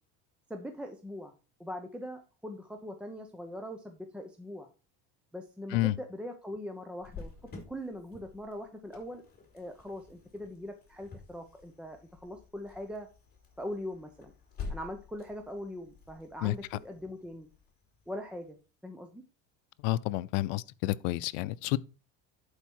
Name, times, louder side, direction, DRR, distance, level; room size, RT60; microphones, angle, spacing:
voice 1, 0.5-1.3 1.6-4.7 5.3-7.3 7.7-9.2 9.5-13.1 13.6-14.3 14.7-17.5 18.1-18.6 18.8-19.2, left 1 dB, 5° right, 0.7 m, -41 dB
Cricket, 7.0-18.5, left 4 dB, 25° left, 3.3 m, -49 dB
voice 2, 19.8-21.8, left 17 dB, 90° left, 0.6 m, -29 dB
11.5 x 4.8 x 4.6 m
cardioid pair, 130°, 37 cm